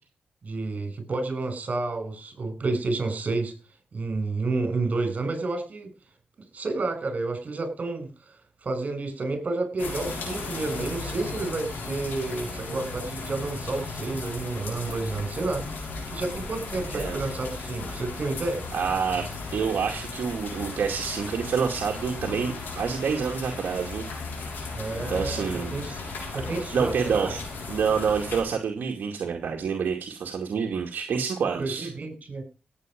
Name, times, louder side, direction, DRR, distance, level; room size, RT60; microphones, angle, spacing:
voice 1, 0.4-3.5 3.9-5.9 6.5-8.1 8.6-15.6 16.1-18.6 24.7-26.0 26.3-27.3 31.6-32.4, right 3 dB, 50° right, 8 dB, 6.3 m, -30 dB
sound 1, 9.8-28.4, left 3 dB, 90° left, 6.8 m, -36 dB
voice 2, 16.9-17.3 18.7-19.3 19.5-24.0 25.1-25.8 26.1-26.2 26.7-27.4 27.7-31.9, right 6 dB, 75° right, 1 dB, 2.3 m, -27 dB
17.0 x 8.5 x 5.2 m, 0.33 s
cardioid pair, 80°, 3 cm